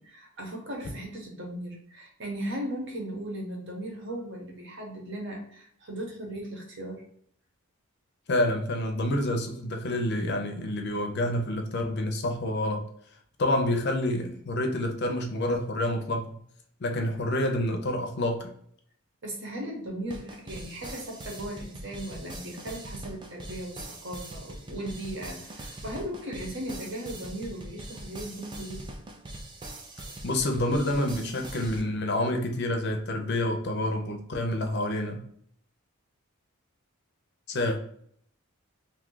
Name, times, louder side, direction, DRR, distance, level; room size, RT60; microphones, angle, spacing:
voice 1, 0.0-7.0 19.2-28.9, right 1 dB, 55° right, 0 dB, 1.0 m, -37 dB
voice 2, 8.3-12.8 13.4-16.4 16.8-18.5 30.2-35.2 37.5-37.8, left 1 dB, 50° left, 4 dB, 0.5 m, -28 dB
sound 1, 20.1-31.8, right 1 dB, 20° right, 0.4 m, -42 dB
2.7 x 2.3 x 3.7 m, 0.63 s
head